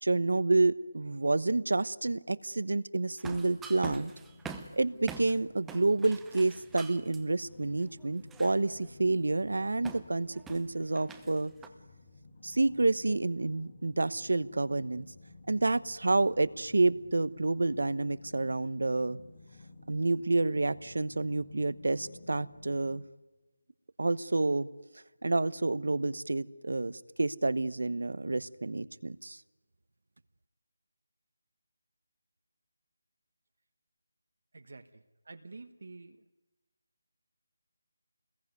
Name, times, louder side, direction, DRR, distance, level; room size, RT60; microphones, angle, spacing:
voice 1, 0.0-4.1 4.8-11.5 12.4-15.1 15.5-19.2 19.9-23.0 24.0-24.7 25.2-29.4, right 2 dB, 80° right, 16 dB, 1.0 m, -29 dB
sound 1, 3.2-5.4 5.7-7.2 7.9-8.9 9.8-11.7, right 5 dB, 5° right, 0.8 m, -46 dB
sound 2, 3.4-23.0, left 3 dB, 35° left, 2.3 m, -54 dB
voice 2, 34.5-36.3, right 3 dB, 65° right, 6 dB, 1.4 m, -49 dB
28.5 x 21.0 x 9.5 m, 1.2 s
figure-of-eight pair, 175°, 0 cm